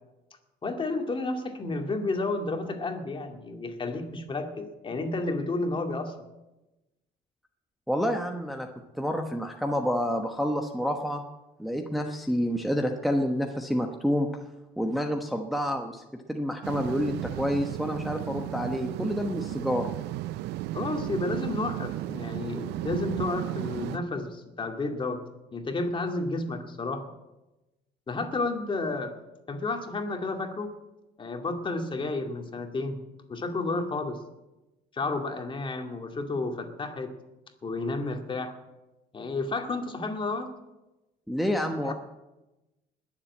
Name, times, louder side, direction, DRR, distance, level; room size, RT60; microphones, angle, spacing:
voice 1, 0.6-6.1 20.7-25.2 25.5-27.0 28.1-29.1 29.5-30.7 31.2-33.0 33.3-34.2 34.9-37.1 37.6-38.5 39.1-40.5 41.8-41.9, left 3 dB, 30° left, 4 dB, 2.3 m, -31 dB
voice 2, 7.9-8.7 8.9-11.2 11.6-14.3 14.8-16.0 16.3-19.9 41.3-41.9, equal, ahead, 3 dB, 1.1 m, -28 dB
sound 1, 16.6-24.0, right 15 dB, 85° right, 0.5 m, -34 dB
20.5 x 7.4 x 8.5 m, 1.0 s
cardioid pair, 110°, 17 cm